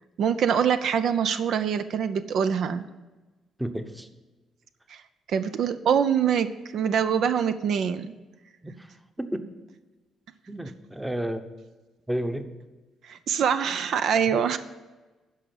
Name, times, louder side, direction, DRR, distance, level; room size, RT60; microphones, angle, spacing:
voice 1, 0.2-2.9 4.9-5.0 5.3-8.1 13.0-14.6, right 7 dB, 70° right, 11 dB, 0.5 m, -24 dB
voice 2, 3.6-4.1 8.6-9.5 10.5-11.4 12.1-12.5 14.3-14.4, right 1 dB, 10° right, 8 dB, 0.9 m, -32 dB
12.0 x 4.8 x 7.8 m, 1.2 s
cardioid pair, 90°, 0 cm